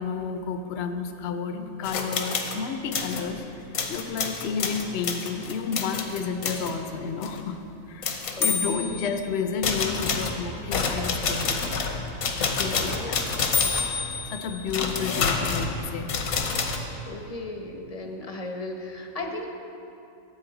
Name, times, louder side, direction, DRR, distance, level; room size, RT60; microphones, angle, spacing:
voice 1, 0.0-7.6 7.9-11.7 12.4-13.2 14.3-16.1, left 5 dB, 55° left, 7 dB, 0.9 m, -31 dB
sound 1, 1.8-2.6 2.9-3.3 3.7-6.7 7.2-7.4 8.0-9.2 9.6-16.8, left 5 dB, 80° left, 1.4 m, -28 dB
voice 2, 8.4-9.0 12.7-13.1 17.1-19.5, left 2 dB, 30° left, 2 dB, 0.8 m, -36 dB
13.5 x 8.6 x 3.9 m, 2.7 s
omnidirectional pair, 1.5 m